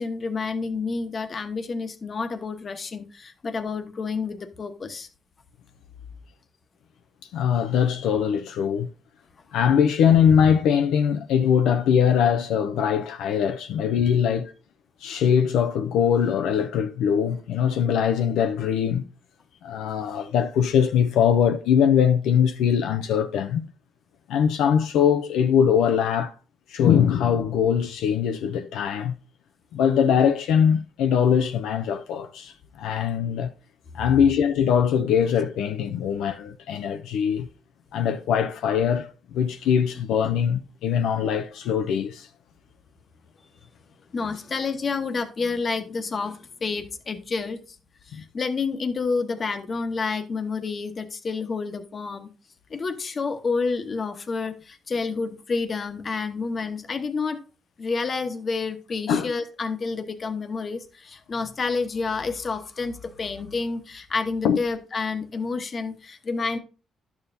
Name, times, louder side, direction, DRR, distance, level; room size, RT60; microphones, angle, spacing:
voice 1, 0.0-5.1 14.0-14.1 35.9-36.0 44.1-47.8 48.1-52.3 52.7-57.4 57.8-66.6, left 4 dB, 40° left, 1.0 m, -29 dB
voice 2, 7.3-8.9 9.5-14.5 15.0-19.0 19.6-23.7 24.3-26.3 26.7-29.1 29.7-32.5 32.8-33.5 33.9-37.5 37.9-42.3 48.1-48.2 59.1-59.3 64.4-64.6, left 8 dB, 85° left, 0.5 m, -22 dB
11.0 x 7.1 x 2.7 m
cardioid pair, 90°, 0 cm